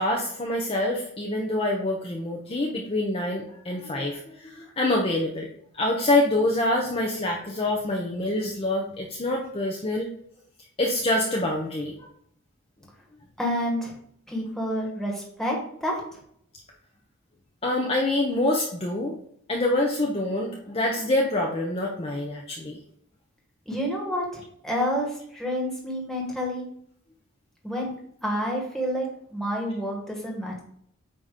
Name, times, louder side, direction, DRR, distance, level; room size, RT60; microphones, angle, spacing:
voice 1, 0.0-5.5 5.7-10.1 10.8-12.1 17.6-19.1 19.5-22.8, left 1 dB, 25° left, 0 dB, 0.7 m, -26 dB
voice 2, 13.4-13.9 14.3-16.0 23.6-26.7 27.6-27.9 28.2-30.6, equal, ahead, -2 dB, 1.6 m, -29 dB
8.7 x 3.0 x 5.0 m, 0.67 s
head